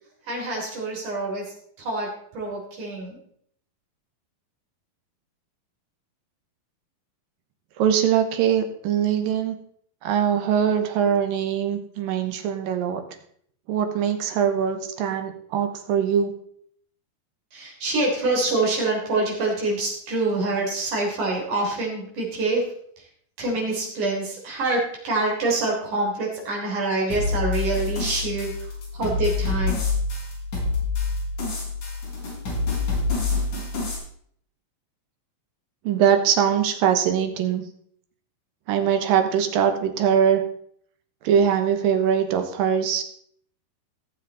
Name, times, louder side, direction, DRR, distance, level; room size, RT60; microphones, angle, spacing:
voice 1, 0.2-3.2 17.5-22.7 23.0-23.1 23.4-29.8, right 2 dB, 60° right, -1 dB, 4.9 m, -26 dB
voice 2, 7.8-9.6 10.0-13.0 13.7-16.3 35.8-37.7 38.7-40.4 41.2-43.0, right 8 dB, 75° right, 7 dB, 2.8 m, -22 dB
sound 1, 27.1-34.0, left 3 dB, 55° left, 5.5 m, -27 dB
18.0 x 7.3 x 4.0 m, 0.65 s
omnidirectional pair, 4.2 m